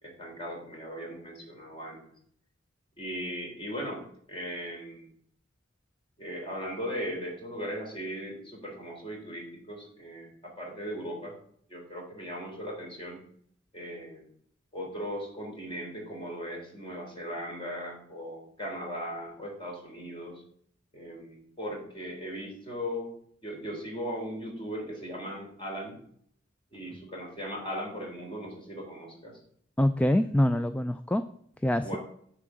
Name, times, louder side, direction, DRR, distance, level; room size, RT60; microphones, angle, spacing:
voice 1, 0.0-2.0 3.0-5.1 6.2-11.3 11.7-13.2 13.7-14.3 14.7-20.4 20.9-23.1 23.4-26.0 26.7-29.4 31.8-32.0, equal, 30° left, -1 dB, 3.7 m, -38 dB
voice 2, 29.8-31.3 31.6-32.0, left 1 dB, 5° left, 10 dB, 0.3 m, -25 dB
9.8 x 4.7 x 7.6 m, 0.64 s
head